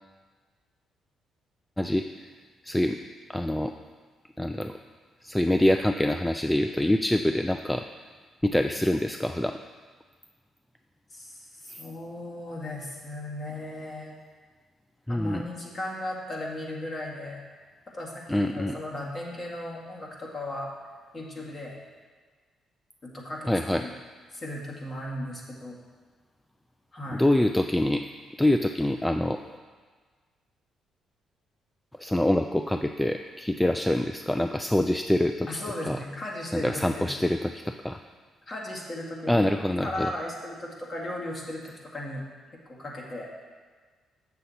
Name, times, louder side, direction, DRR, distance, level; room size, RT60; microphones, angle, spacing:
voice 1, 1.8-2.3 2.6-3.0 3.3-3.7 4.4-4.7 5.2-7.9 8.4-9.6 11.7-11.8 15.1-15.4 18.3-18.8 23.5-23.9 27.2-28.1 28.4-29.4 32.0-36.0 36.5-38.0 39.3-40.1, left 1 dB, 5° left, 6 dB, 0.3 m, -25 dB
voice 2, 11.1-14.1 15.1-17.4 17.9-20.7 21.1-21.8 23.0-23.9 24.3-25.8 26.9-27.2 35.5-37.1 38.5-39.5 39.8-42.2 42.7-43.3, left 1 dB, 35° left, -2 dB, 1.9 m, -36 dB
7.7 x 6.9 x 4.2 m, 1.5 s
cardioid pair, 90°, 0 cm